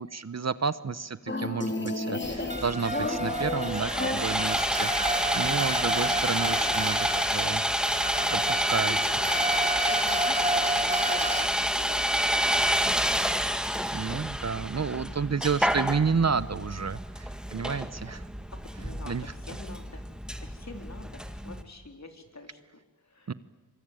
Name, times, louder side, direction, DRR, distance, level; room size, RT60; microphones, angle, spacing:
voice 1, 0.0-7.0 7.3-7.6 8.3-9.0 13.9-18.3 19.0-19.3 23.3-23.4, right 5 dB, 45° right, 16 dB, 0.9 m, -30 dB
sound 1, 1.3-4.8, left 2 dB, 30° left, 3.1 m, -32 dB
Sawing, 2.2-21.6, equal, ahead, 2.0 m, -29 dB
sound 2, 2.5-11.5, right 2 dB, 20° right, 1.6 m, -32 dB
voice 2, 5.9-7.1 8.2-12.9 18.5-20.0 20.4-22.6 23.0-23.3, left 3 dB, 45° left, 5 dB, 4.0 m, -46 dB
25.0 x 23.5 x 9.1 m, 1.2 s
cardioid pair, 45°, 37 cm